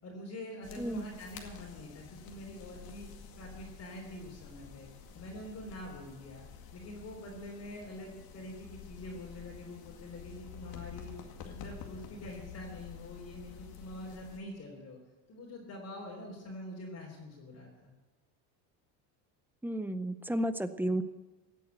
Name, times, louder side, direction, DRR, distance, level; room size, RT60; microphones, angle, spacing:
voice 1, 0.0-3.1 3.4-4.9 5.1-6.4 6.7-11.1 11.5-15.0 15.3-17.9, left 1 dB, 35° left, -3 dB, 3.5 m, -45 dB
sound 1, 0.6-14.4, left 7 dB, 60° left, 2.2 m, -50 dB
voice 2, 0.8-1.1 19.6-21.0, right 1 dB, 5° right, 11 dB, 0.6 m, -32 dB
16.5 x 8.3 x 7.9 m, 1.1 s
cardioid pair, 135°, 41 cm